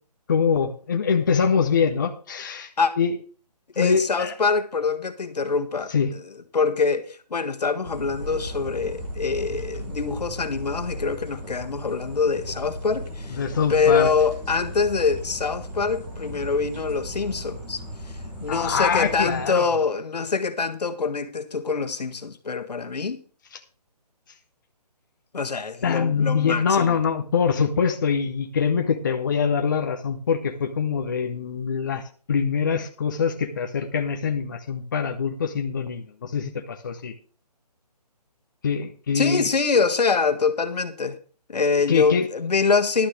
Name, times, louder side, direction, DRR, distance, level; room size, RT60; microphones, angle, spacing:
voice 1, 0.3-2.7 3.0-3.1 3.8-4.3 5.9-6.1 13.4-14.1 18.5-19.7 23.5-23.6 25.8-37.1 38.6-39.5 41.9-42.2, left 6 dB, 30° left, 0.7 m, -24 dB
voice 2, 3.8-6.2 6.5-13.4 13.7-17.8 18.4-23.2 25.3-26.9 39.1-41.2 41.5-43.1, left 5 dB, 75° left, 1.5 m, -24 dB
sound 1, 7.8-19.5, equal, 10° right, 1.6 m, -36 dB
11.5 x 6.3 x 6.4 m
hypercardioid pair, 170°, 21 cm